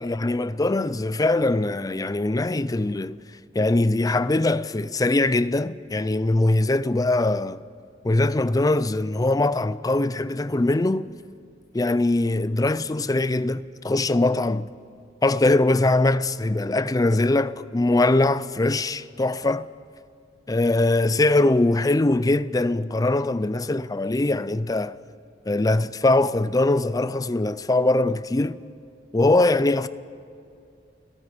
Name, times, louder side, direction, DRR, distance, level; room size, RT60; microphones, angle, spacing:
voice 1, 0.0-3.2 3.5-7.6 8.0-11.1 11.7-14.7 15.2-19.7 20.5-25.0 25.5-28.6 29.1-29.9, left 2 dB, 20° left, 0.5 m, -22 dB
30.0 x 17.5 x 5.2 m
head